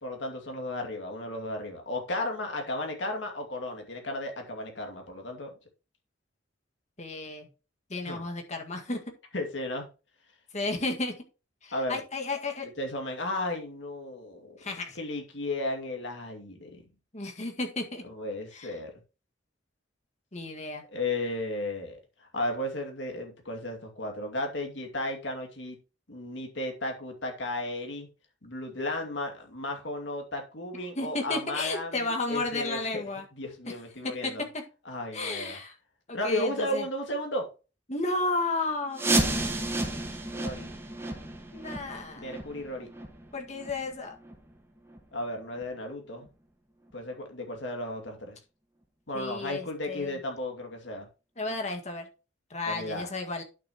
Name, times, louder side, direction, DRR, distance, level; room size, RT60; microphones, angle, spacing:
voice 1, 0.0-5.5 8.1-8.2 9.3-9.9 11.7-12.0 12.8-14.6 15.0-16.8 18.0-18.9 20.9-25.8 26.1-28.1 28.4-33.0 33.4-34.4 34.9-35.6 36.1-37.5 40.3-40.7 42.2-42.9 45.1-46.3 46.9-48.4 49.1-51.1 52.6-53.1, left 1 dB, 75° left, 2.4 m, -34 dB
voice 2, 7.0-7.5 7.9-9.0 10.5-11.1 11.6-12.7 14.6-15.0 17.1-18.0 18.5-18.7 20.3-20.8 31.0-33.2 34.0-34.6 35.1-35.7 36.1-36.8 37.9-39.0 41.5-42.3 43.3-44.2 49.1-50.2 51.4-52.1 52.5-53.4, left 2 dB, 40° left, 1.8 m, -33 dB
sound 1, 38.9-44.5 44.9-45.0 45.5-45.6 46.2-46.3 46.9-47.0, right 2 dB, 15° right, 1.5 m, -32 dB
11.0 x 6.4 x 3.0 m
head